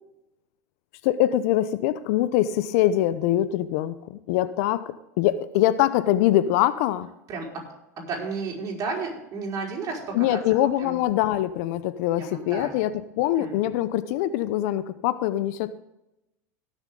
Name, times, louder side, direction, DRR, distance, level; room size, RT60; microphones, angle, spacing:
voice 1, 1.0-4.8 5.2-7.1 10.1-12.9 13.2-15.8, left 13 dB, 65° left, 14 dB, 0.8 m, -23 dB
voice 2, 7.3-7.7 8.0-10.4 10.8-11.0 12.2-12.8 13.4-13.7, right 4 dB, 40° right, -2 dB, 5.3 m, -33 dB
18.5 x 7.2 x 3.8 m, 0.90 s
hypercardioid pair, 95°, 9 cm